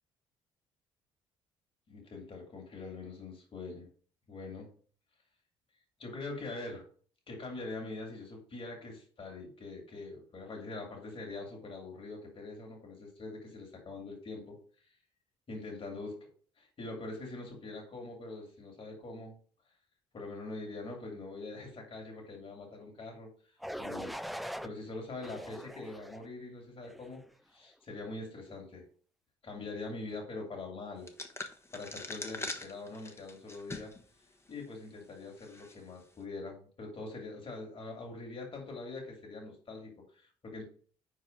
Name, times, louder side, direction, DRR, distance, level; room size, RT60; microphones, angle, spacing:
voice 1, 1.9-3.9 4.3-4.7 6.0-6.8 7.3-14.6 15.5-16.3 16.6-19.4 20.1-23.3 23.8-24.2 24.6-27.2 27.5-28.8 29.4-31.1 31.7-33.9 34.5-40.7, left 3 dB, 45° left, 0 dB, 2.9 m, -43 dB
sound 1, 23.6-24.7 25.2-26.3 26.8-27.2, equal, ahead, 0.3 m, -41 dB
sound 2, 31.1-34.0 34.5-34.6 35.4-35.7, left 2 dB, 20° left, 1.1 m, -42 dB
4.8 x 4.7 x 5.3 m, 0.44 s
hypercardioid pair, 60°, 13 cm